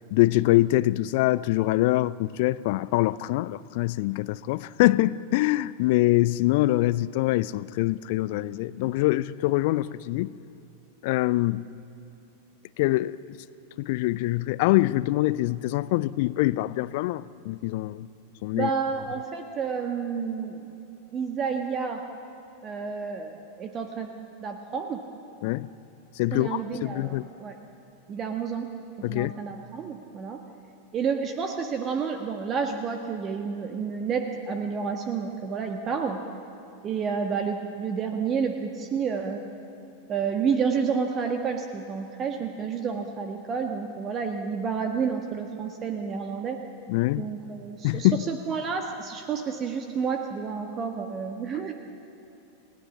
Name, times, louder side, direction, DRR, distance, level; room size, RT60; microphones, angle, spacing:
voice 1, 0.1-10.3 11.0-11.6 12.8-13.4 13.8-18.1 18.4-18.7 25.4-25.7 26.2-27.3 29.0-29.3 46.9-47.3 47.8-48.2, left 18 dB, 50° left, 0.5 m, -24 dB
voice 2, 18.5-20.7 21.1-22.0 22.6-24.1 24.4-25.0 26.3-27.6 28.1-28.7 29.1-30.4 30.9-36.2 36.8-39.4 40.1-46.6 47.2-51.7, right 6 dB, 30° right, 1.5 m, -30 dB
29.5 x 17.5 x 7.3 m
figure-of-eight pair, 90°, 0 cm